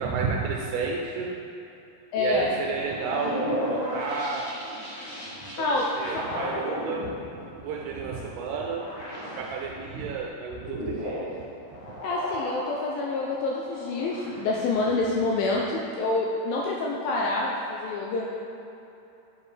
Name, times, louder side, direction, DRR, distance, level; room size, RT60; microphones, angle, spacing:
voice 1, 0.0-1.4 2.2-4.5 5.6-7.1 7.6-8.8 9.3-11.4 11.7-11.9, right 4 dB, 85° right, -1 dB, 2.6 m, -31 dB
voice 2, 2.1-2.5 5.6-5.9 6.1-6.2 12.0-18.4, left 3 dB, 85° left, -3 dB, 2.2 m, -27 dB
sound 1, 2.8-9.6 10.1-15.6, equal, 65° left, 1.1 m, -35 dB
7.4 x 4.5 x 4.9 m, 2.9 s
omnidirectional pair, 4.6 m